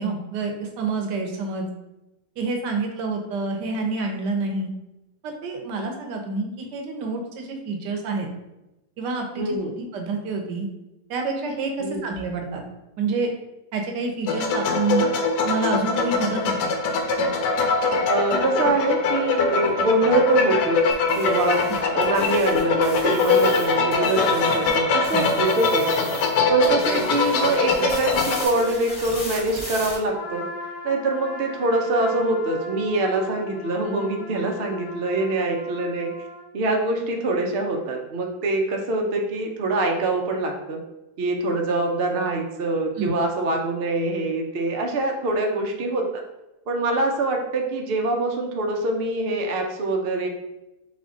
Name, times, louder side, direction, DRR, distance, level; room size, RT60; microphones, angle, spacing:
voice 1, 0.0-1.7 2.4-4.7 5.2-8.3 9.0-10.7 11.1-12.6 13.0-13.3 13.7-15.0 15.4-16.7 25.1-25.2 43.0-43.1, right 3 dB, 80° right, 2 dB, 1.4 m, -28 dB
voice 2, 9.4-9.7 11.8-12.1 18.1-21.6 21.9-26.1 26.5-30.4 30.8-36.1 36.5-40.8 41.2-46.2 46.7-50.3, right 2 dB, 60° right, 2 dB, 0.6 m, -24 dB
sound 1, 14.3-28.4, left 4 dB, 85° left, 1.2 m, -22 dB
sound 2, 20.9-24.8 25.0-26.4 26.6-30.0, left 1 dB, 30° left, 1.3 m, -36 dB
Trumpet, 30.0-36.5, left 2 dB, 60° left, 0.5 m, -38 dB
4.1 x 3.5 x 3.7 m, 0.95 s
omnidirectional pair, 1.8 m